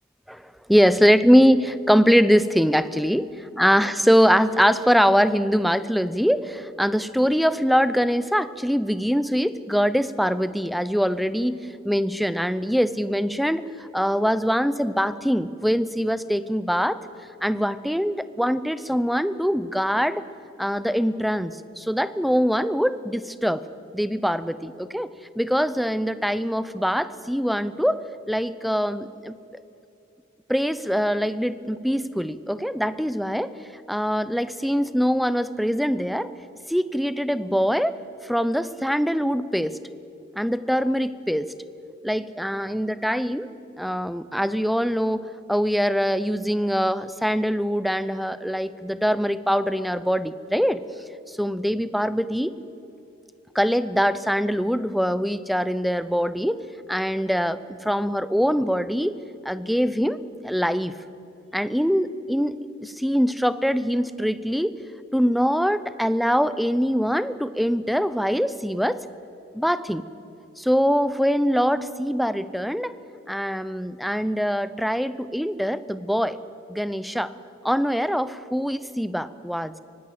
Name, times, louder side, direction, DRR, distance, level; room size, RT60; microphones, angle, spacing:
voice 1, 0.3-3.3 3.6-17.0 17.4-20.3 20.6-23.6 23.9-25.1 25.4-29.4 30.5-33.5 33.9-36.3 36.7-37.9 38.2-39.8 40.4-41.5 42.0-43.5 43.8-50.8 51.3-52.5 53.5-56.6 56.9-59.2 59.4-60.2 60.4-60.9 61.5-62.5 62.8-64.8 65.1-69.0 69.5-70.0 70.6-72.9 73.3-76.4 76.7-77.3 77.6-79.7, equal, ahead, 15 dB, 0.6 m, -23 dB
24.0 x 18.5 x 7.7 m, 2.7 s
head